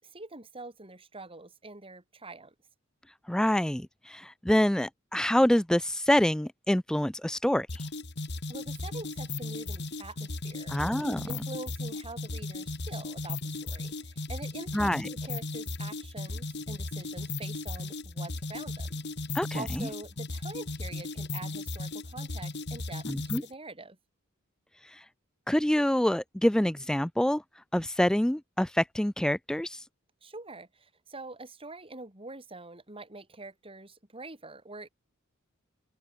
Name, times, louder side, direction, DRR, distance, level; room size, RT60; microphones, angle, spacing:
voice 1, 0.0-2.5 8.5-10.8 11.3-15.0 15.2-18.9 19.5-23.1 23.3-24.0 30.2-34.9, right 2 dB, 25° right, 4.7 m, -45 dB
voice 2, 3.3-7.9 10.7-11.3 14.7-15.1 19.3-19.9 23.0-23.4 24.8-25.0 25.5-27.4 27.7-29.8, left 1 dB, 5° left, 0.3 m, -26 dB
sound 1, 7.7-23.5, left 2 dB, 55° left, 2.4 m, -36 dB
open air
head